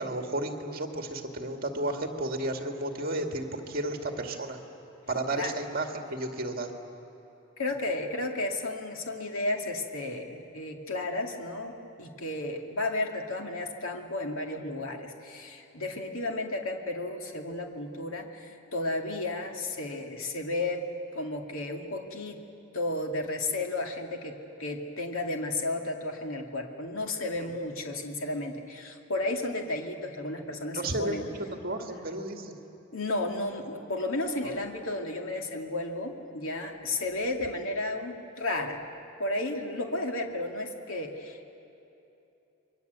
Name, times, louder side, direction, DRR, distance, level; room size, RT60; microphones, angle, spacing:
voice 1, 0.0-4.6 5.1-6.7 27.4-27.5 30.7-31.3 31.6-32.5 34.4-34.5, right 2 dB, 40° right, 4 dB, 2.3 m, -33 dB
voice 2, 7.6-20.8 21.1-22.4 22.7-31.2 32.9-38.8 39.2-41.4, left 2 dB, 75° left, 3 dB, 2.4 m, -33 dB
28.0 x 23.0 x 8.2 m, 2.9 s
head